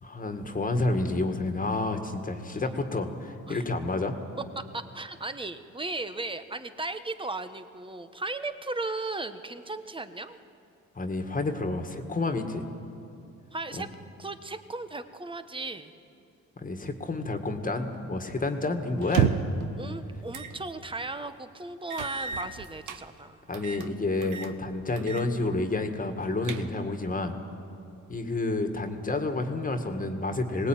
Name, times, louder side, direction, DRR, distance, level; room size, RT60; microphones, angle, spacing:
voice 1, 0.0-4.1 11.0-12.7 13.8-13.9 16.6-19.4 23.5-27.3 28.1-30.7, left 2 dB, 25° left, 6 dB, 2.0 m, -29 dB
voice 2, 4.6-10.4 13.5-13.9 14.2-15.9 19.8-23.4, right 2 dB, 15° right, 10 dB, 1.3 m, -36 dB
sound 1, 19.0-19.6 20.3-20.6 21.0-21.1 21.9-23.0 23.5-23.9 24.2-24.5 25.0-25.3 25.6-25.7 26.2-27.0, right 8 dB, 85° right, 1.2 m, -30 dB
22.5 x 18.5 x 9.2 m, 2.7 s
cardioid pair, 90°, 30 cm